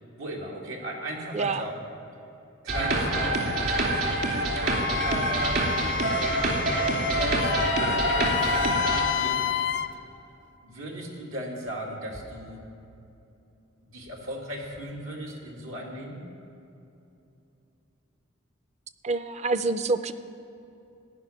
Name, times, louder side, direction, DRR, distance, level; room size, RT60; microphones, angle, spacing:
voice 1, 0.2-1.7 2.6-3.5 5.1-5.6 7.0-8.2 9.2-9.7 10.6-12.6 13.9-16.2, right 1 dB, 85° right, -1 dB, 2.3 m, -36 dB
sound 1, 2.7-9.0, right 2 dB, 55° right, 2.7 m, -26 dB
Wind instrument woodwind instrument, 4.6-9.9, left 9 dB, 60° left, 0.4 m, -30 dB
voice 2, 19.0-20.1, right 3 dB, 35° right, 11 dB, 0.5 m, -27 dB
15.5 x 6.1 x 9.8 m, 2.8 s
head